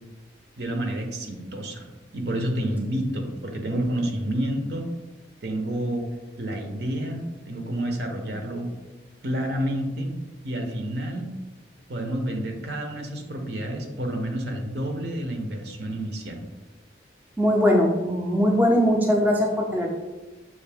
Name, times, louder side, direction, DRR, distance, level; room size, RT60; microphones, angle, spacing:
voice 1, 0.6-1.9 2.1-4.9 5.4-6.1 6.4-8.7 9.2-10.1 10.4-11.3 11.9-16.4, right 1 dB, 60° right, 3 dB, 0.7 m, -29 dB
voice 2, 17.4-19.9, equal, 10° right, -1 dB, 0.4 m, -20 dB
5.7 x 2.6 x 3.4 m, 1.2 s
head